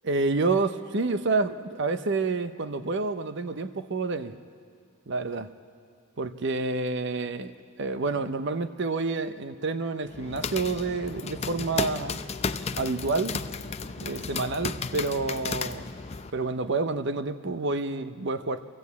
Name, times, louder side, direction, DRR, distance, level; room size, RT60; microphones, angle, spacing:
voice 1, 0.0-4.4 5.1-5.5 6.2-7.5 7.8-12.2 12.8-13.4 14.0-15.9 16.3-18.6, right 3 dB, 55° right, 10 dB, 0.7 m, -28 dB
sound 1, 10.1-16.3, left 4 dB, 30° left, 0.5 m, -33 dB
24.0 x 16.0 x 8.3 m, 2.2 s
head